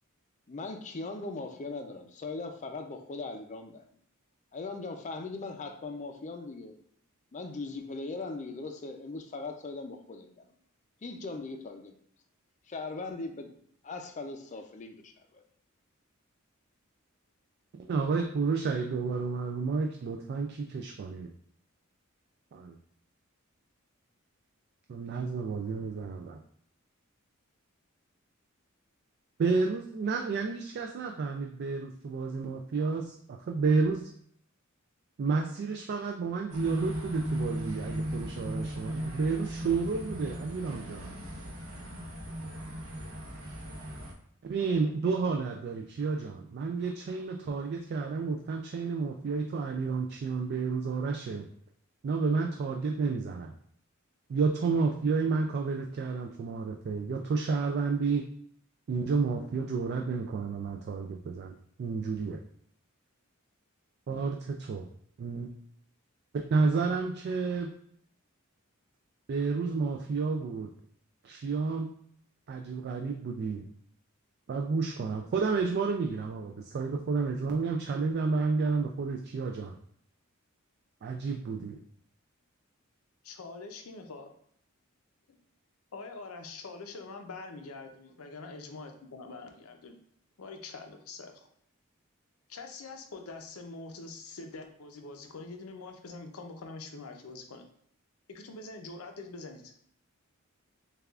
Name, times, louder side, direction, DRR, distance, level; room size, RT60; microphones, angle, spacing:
voice 1, 0.5-3.9 4.5-6.7 7.3-10.5 11.0-11.9 12.7-13.5 13.8-15.4, left 3 dB, 35° left, 5 dB, 0.4 m, -39 dB
voice 2, 17.9-21.3 22.5-22.8 24.9-26.4 29.4-34.1 35.2-41.1 44.4-51.5 52.0-53.5 54.3-58.3 58.9-62.4 64.1-64.9 65.2-65.5 66.5-67.7 69.3-70.7 71.2-71.9 72.5-73.6 74.5-79.8 81.0-81.8, right 4 dB, 50° right, 3 dB, 0.3 m, -31 dB
sound 1, 36.5-44.1, equal, 75° right, 0.9 m, -36 dB
voice 3, 83.2-84.3 85.9-90.0 90.4-91.5 92.5-97.6 98.3-99.7, left 3 dB, 85° left, 4 dB, 0.6 m, -44 dB
6.5 x 2.4 x 2.4 m, 0.66 s
head